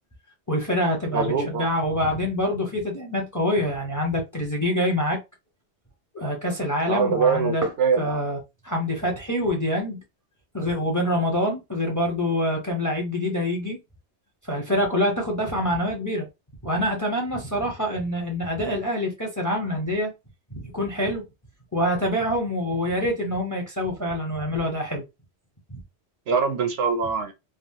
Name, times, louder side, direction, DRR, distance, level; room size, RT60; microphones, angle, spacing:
voice 1, 0.5-5.2 6.1-7.7 8.0-10.0 10.5-13.8 14.4-16.3 16.6-20.1 20.5-21.2 21.7-25.0 25.7-25.8, left 1 dB, 20° left, 0.6 m, -26 dB
voice 2, 1.1-1.7 6.9-8.2 26.3-27.3, right 5 dB, 65° right, 0.8 m, -23 dB
3.5 x 2.0 x 2.6 m
omnidirectional pair, 1.2 m